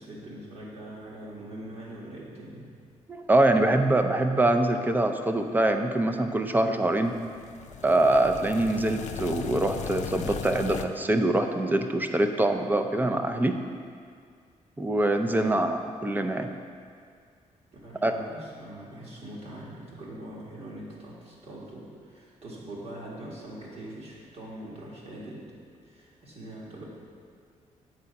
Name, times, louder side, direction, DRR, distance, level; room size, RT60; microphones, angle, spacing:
voice 1, 0.0-2.8 15.3-15.6 17.8-25.4 25.8-26.8, right 1 dB, 50° right, -5 dB, 2.0 m, -42 dB
voice 2, 3.1-7.1 7.8-13.6 14.8-16.5 18.0-18.1, right 1 dB, 15° right, 6 dB, 0.5 m, -24 dB
sound 1, 7.0-10.8, left 8 dB, 65° left, 0.4 m, -37 dB
7.7 x 4.1 x 5.8 m, 2.2 s
cardioid pair, 115°, 13 cm